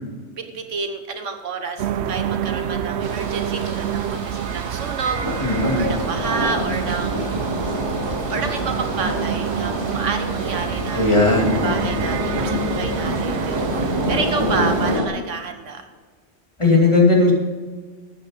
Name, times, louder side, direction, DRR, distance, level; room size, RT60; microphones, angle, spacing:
voice 1, 0.4-7.3 8.3-11.1 11.5-15.8, right 5 dB, 85° right, 6 dB, 1.6 m, -29 dB
sound 1, 1.8-15.0, right 9 dB, 70° right, 0.8 m, -28 dB
sound 2, 3.0-15.1, left 1 dB, 20° right, 2.7 m, -27 dB
voice 2, 5.4-5.9 10.9-11.9 16.6-17.3, left 3 dB, 25° left, -2 dB, 2.6 m, -17 dB
12.5 x 8.9 x 5.1 m, 1.4 s
omnidirectional pair, 1.2 m